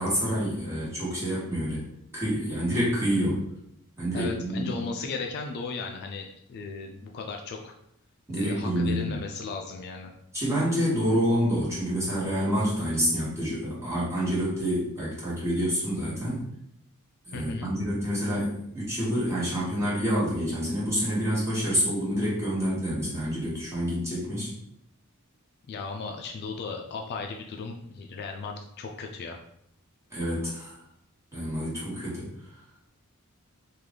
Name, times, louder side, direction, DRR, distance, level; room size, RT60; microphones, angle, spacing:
voice 1, 0.0-1.8 2.1-3.5 4.0-4.8 8.3-9.2 10.3-16.4 17.3-24.5 30.1-30.7 31.3-32.3, equal, 15° right, -9 dB, 1.4 m, -27 dB
voice 2, 4.1-7.7 8.3-10.1 17.3-17.7 25.7-29.4, left 4 dB, 50° left, 2 dB, 0.3 m, -36 dB
3.2 x 2.4 x 3.6 m, 0.75 s
head